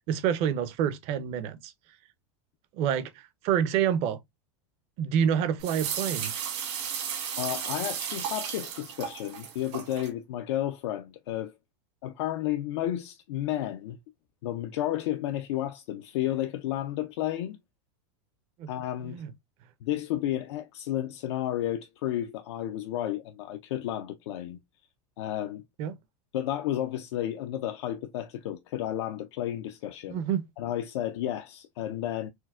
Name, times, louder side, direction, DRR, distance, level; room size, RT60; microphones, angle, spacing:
voice 1, 0.1-1.7 2.7-4.2 5.0-6.3 18.6-18.7 19.0-19.3 25.8-26.0 30.1-30.4, right 8 dB, 45° right, 0.5 m, -27 dB
sound 1, 5.6-10.1, right 8 dB, 70° right, 1.5 m, -34 dB
voice 2, 7.4-11.5 12.0-14.0 14.4-17.6 18.7-19.2 19.8-24.6 25.2-25.6 26.3-30.2 30.6-32.3, left 12 dB, 75° left, 0.4 m, -32 dB
4.4 x 2.1 x 2.2 m
supercardioid pair, 140°, 15 cm